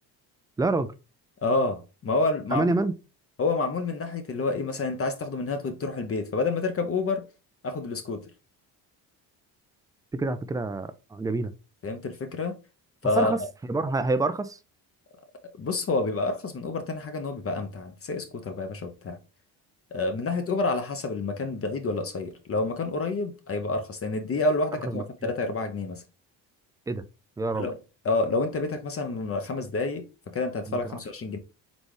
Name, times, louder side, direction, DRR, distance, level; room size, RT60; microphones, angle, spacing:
voice 1, 0.6-0.9 2.5-2.9 10.1-11.5 13.2-13.4 13.7-14.6 24.8-25.3 26.9-27.0 27.4-27.7 30.7-31.0, right 3 dB, 10° right, 0.3 m, -27 dB
voice 2, 1.4-2.7 3.4-7.2 7.6-8.2 11.8-12.6 13.0-13.3 15.6-19.2 19.9-26.0 27.5-27.7 28.0-31.4, left 3 dB, 35° left, 0.7 m, -28 dB
4.1 x 3.4 x 3.2 m
supercardioid pair, 80°, 40 cm